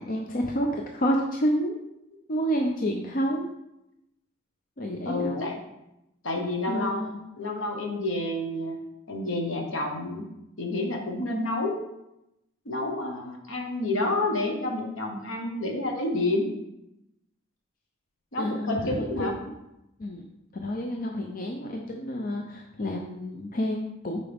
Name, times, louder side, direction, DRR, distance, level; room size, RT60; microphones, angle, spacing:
voice 1, 0.0-1.8 2.3-3.5 4.8-5.5 6.7-7.2 18.4-19.5 20.0-20.2 20.5-24.2, equal, 40° left, 1 dB, 0.6 m, -29 dB
voice 2, 5.0-5.6 6.2-7.0 7.4-8.8 9.1-10.3 10.6-11.8 12.6-16.5 18.3-19.3, left 2 dB, 65° left, 2 dB, 1.2 m, -29 dB
8.5 x 4.7 x 3.5 m, 0.88 s
head